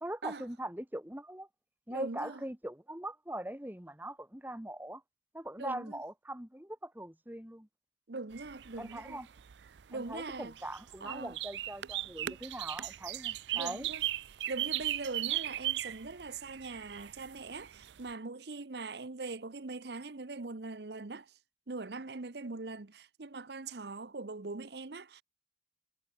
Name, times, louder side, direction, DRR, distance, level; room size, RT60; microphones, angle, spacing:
voice 1, 0.0-1.5 1.9-5.0 5.3-7.7 8.8-9.3 9.9-13.9, right 1 dB, 10° right, 1.2 m, -41 dB
voice 2, 1.9-2.4 5.6-6.0 8.1-9.2 9.9-10.5 11.0-11.4 13.5-14.0 14.3-21.3 21.7-25.2, right 3 dB, 75° right, 0.9 m, -42 dB
sound 1, 8.3-18.1, right 13 dB, 90° right, 0.5 m, -38 dB
head